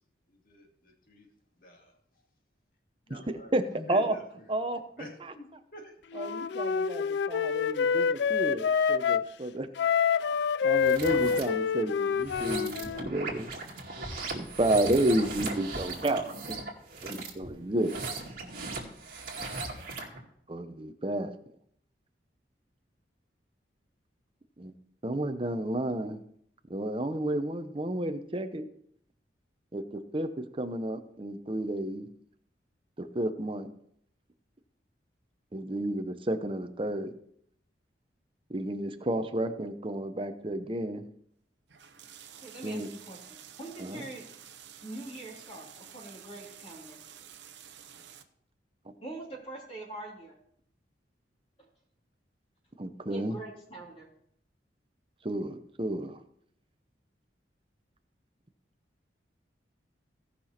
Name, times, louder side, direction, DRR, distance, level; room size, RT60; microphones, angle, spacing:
voice 1, 0.3-1.3 1.6-1.9 3.1-4.2 5.0-5.9, left 1 dB, 50° left, 2 dB, 2.3 m, -47 dB
voice 2, 3.1-3.6 3.9-4.1 4.5-4.8 5.2-5.3 6.1-9.7 10.2-13.5 14.3-16.6 17.0-18.0 20.5-21.3 24.6-24.7 25.0-26.2 26.7-28.7 29.7-32.1 33.0-33.7 35.5-37.1 38.5-41.1 42.6-42.9 43.8-44.0 52.8-53.4 55.2-56.2, right 1 dB, 30° right, 8 dB, 0.8 m, -31 dB
Wind instrument woodwind instrument, 6.1-9.3 9.8-13.1, left 6 dB, 70° left, 0.4 m, -27 dB
sound 1, 10.7-11.4 12.1-20.2, right 3 dB, 50° right, 2.3 m, -38 dB
sound 2, 41.7-48.2, right 9 dB, 75° right, 0.8 m, -50 dB
voice 3, 42.3-44.3 44.8-47.0 49.0-50.3 51.6-51.7 53.1-54.1, right 2 dB, 30° left, -3 dB, 2.9 m, -43 dB
17.0 x 5.9 x 4.3 m, 0.70 s
head